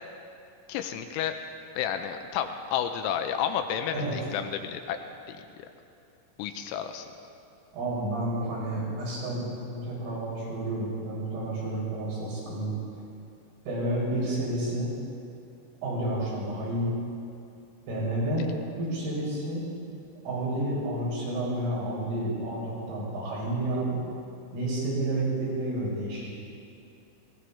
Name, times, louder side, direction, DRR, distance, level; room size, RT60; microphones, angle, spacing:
voice 1, 0.7-1.4 1.8-5.0 5.3-5.4 6.4-7.1, left 9 dB, 85° left, 7 dB, 3.2 m, -31 dB
voice 2, 7.7-12.7 13.7-14.9 15.8-16.9 17.9-18.5 18.8-19.7 20.3-24.0 24.5-26.3, right 1 dB, 75° right, -6 dB, 8.0 m, -30 dB
19.0 x 16.5 x 4.2 m, 2.6 s
omnidirectional pair, 6.0 m